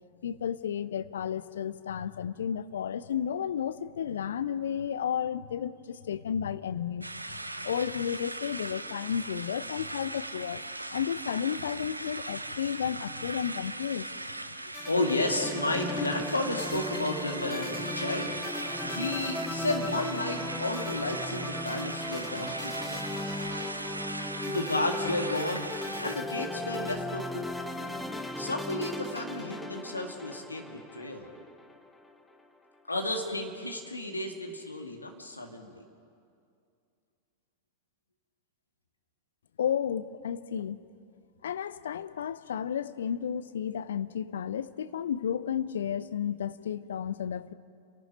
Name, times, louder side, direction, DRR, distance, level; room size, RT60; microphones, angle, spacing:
voice 1, 0.2-7.1 7.6-10.6 10.9-14.1 39.6-40.8 41.4-47.5, left 8 dB, 65° left, 14 dB, 0.7 m, -32 dB
sound 1, 7.0-26.2, right 2 dB, 85° right, 0.7 m, -39 dB
sound 2, 14.7-32.1, left 2 dB, 5° left, 1.2 m, -37 dB
voice 2, 14.9-23.1 24.5-25.7 26.0-27.7 28.4-31.3 32.9-35.8, left 2 dB, 80° left, 3 dB, 2.3 m, -32 dB
29.5 x 11.5 x 9.1 m, 2.4 s
figure-of-eight pair, 90°, 0 cm